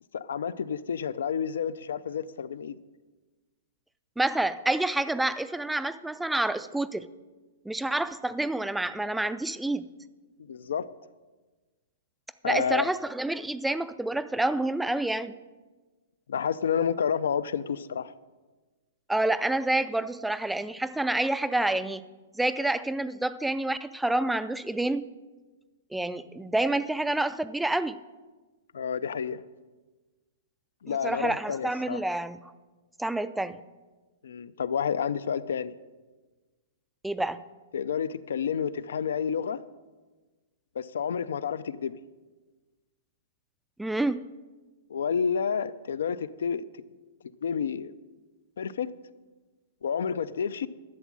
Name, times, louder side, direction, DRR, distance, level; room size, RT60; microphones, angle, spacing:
voice 1, 0.1-2.8 10.4-10.9 12.4-12.9 16.3-18.1 28.7-29.4 30.8-32.0 34.2-35.8 37.7-39.6 40.8-42.0 44.9-46.6 47.4-47.9 48.6-48.9 49.8-50.7, left 7 dB, 85° left, 16 dB, 0.5 m, -30 dB
voice 2, 4.2-7.1 7.7-9.9 12.4-15.3 19.1-22.0 22.4-25.0 25.9-28.0 30.9-32.4 33.0-33.6 37.0-37.4 43.8-44.2, right 2 dB, 5° right, 14 dB, 0.3 m, -28 dB
12.0 x 7.2 x 7.5 m, 1.3 s
hypercardioid pair, 160°, 0 cm